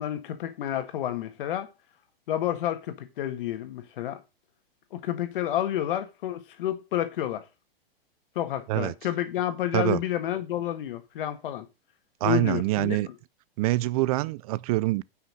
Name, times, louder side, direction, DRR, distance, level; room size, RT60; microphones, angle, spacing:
voice 1, 0.0-1.7 2.3-4.2 4.9-7.5 8.4-11.7 12.2-13.1, left 11 dB, 60° left, 1.8 m, -30 dB
voice 2, 12.2-13.1 13.6-15.0, right 18 dB, 40° right, 0.4 m, -25 dB
9.5 x 5.8 x 6.2 m
hypercardioid pair, 120°, 30 cm